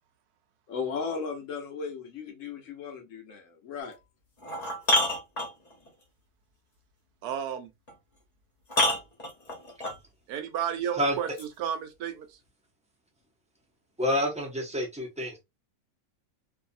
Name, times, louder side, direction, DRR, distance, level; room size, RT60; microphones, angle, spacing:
voice 1, 0.7-4.0, left 5 dB, 65° left, 0.9 m, -36 dB
sound 1, 3.8-3.9 4.4-5.9 7.9-8.0 8.7-10.0 11.4-11.5, left 1 dB, 30° left, 0.9 m, -27 dB
voice 2, 7.2-7.7 10.3-12.3, right 9 dB, 90° right, 1.2 m, -32 dB
voice 3, 14.0-15.4, equal, 5° right, 0.5 m, -28 dB
2.7 x 2.6 x 2.5 m
omnidirectional pair, 1.6 m